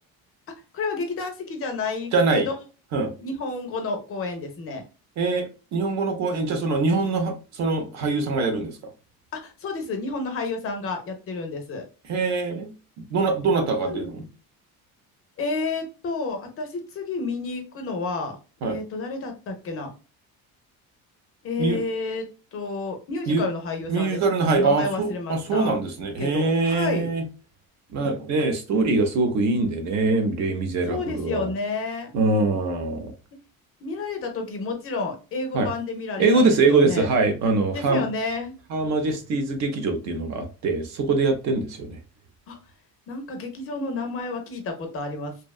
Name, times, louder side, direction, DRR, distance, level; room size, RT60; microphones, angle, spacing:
voice 1, 0.7-2.5 3.2-4.8 9.3-11.9 13.7-14.1 15.4-18.4 18.6-19.9 21.4-24.2 24.5-25.7 26.2-27.1 30.9-32.1 33.8-37.1 37.7-38.5 42.5-42.6 43.1-45.4, left 3 dB, 35° left, 0.5 m, -30 dB
voice 2, 2.1-2.5 2.9-3.1 5.2-8.8 12.1-12.7 13.1-14.2 18.6-18.8 21.6-21.8 23.3-23.5 23.9-27.2 27.9-31.5 32.1-33.1 35.5-35.7 36.2-38.0 38.7-42.0, right 3 dB, 45° right, 0.5 m, -23 dB
2.7 x 2.1 x 2.2 m
cardioid pair, 180°, 38 cm